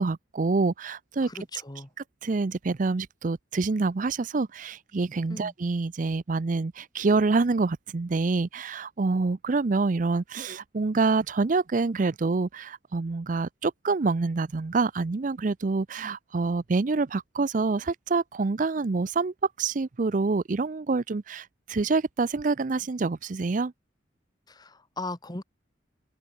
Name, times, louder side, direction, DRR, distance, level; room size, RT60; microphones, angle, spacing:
voice 1, 0.0-1.3 2.2-23.7, right 3 dB, 45° right, 0.5 m, -26 dB
voice 2, 1.3-1.9 5.3-5.5 24.5-25.4, left 2 dB, 20° left, 2.3 m, -38 dB
open air
head